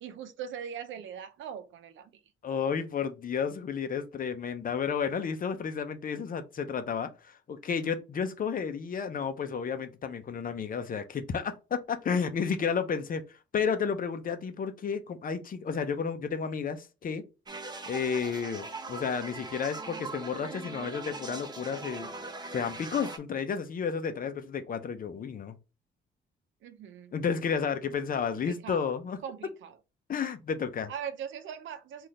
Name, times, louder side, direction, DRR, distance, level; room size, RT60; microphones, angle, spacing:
voice 1, 0.0-2.1 26.6-27.1 28.3-28.8 29.2-29.7 30.9-32.1, right 8 dB, 75° right, 0.7 m, -40 dB
voice 2, 2.4-13.2 13.5-17.2 17.9-22.1 22.5-25.6 27.1-29.2 30.1-30.9, left 6 dB, 45° left, 0.7 m, -32 dB
sound 1, 17.5-23.2, right 3 dB, 20° right, 0.7 m, -41 dB
3.9 x 2.5 x 3.2 m
cardioid pair, 90°, 20 cm